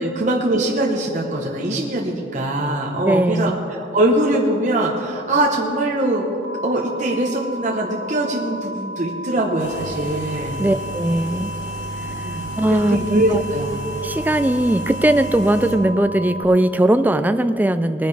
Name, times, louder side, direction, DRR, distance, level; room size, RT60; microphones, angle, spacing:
voice 1, 0.0-3.5 3.8-6.2 6.6-10.6 12.2-13.7, right 1 dB, 40° right, -2 dB, 1.0 m, -22 dB
voice 2, 3.0-3.6 10.6-11.5 12.6-13.4 14.0-18.1, right 1 dB, 10° right, 11 dB, 0.3 m, -19 dB
sound 1, 6.4-16.4, equal, 75° right, 1.1 m, -33 dB
sound 2, 9.6-15.8, right 1 dB, 90° left, 1.5 m, -33 dB
20.0 x 10.0 x 3.4 m, 2.9 s
head